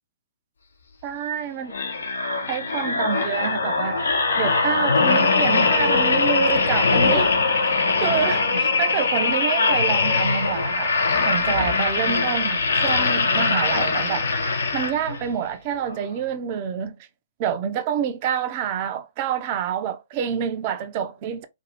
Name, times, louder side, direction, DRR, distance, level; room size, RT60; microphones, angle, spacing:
voice 1, 1.0-1.7 2.5-4.0 4.3-7.3 7.6-7.7 8.0-11.0 11.2-17.1 17.4-21.4, right 8 dB, 40° right, 0.5 m, -27 dB
sound 1, 1.7-15.3 15.8-16.0, left 4 dB, 80° left, 0.8 m, -21 dB
2.6 x 2.6 x 2.9 m
figure-of-eight pair, 120°, 0 cm